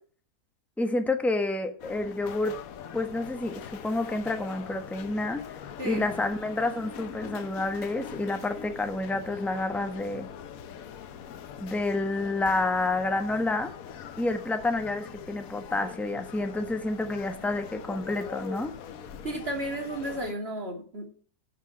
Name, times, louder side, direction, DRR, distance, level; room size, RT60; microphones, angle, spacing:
voice 1, 0.8-2.5 2.9-5.4 5.8-10.3 11.6-13.7 14.2-18.7, left 2 dB, ahead, 6 dB, 1.0 m, -29 dB
sound 1, 1.8-20.3, left 8 dB, 65° left, 1.2 m, -42 dB
voice 2, 19.2-21.1, right 1 dB, 40° right, 1 dB, 3.1 m, -33 dB
10.5 x 5.9 x 7.3 m, 0.43 s
omnidirectional pair, 1.6 m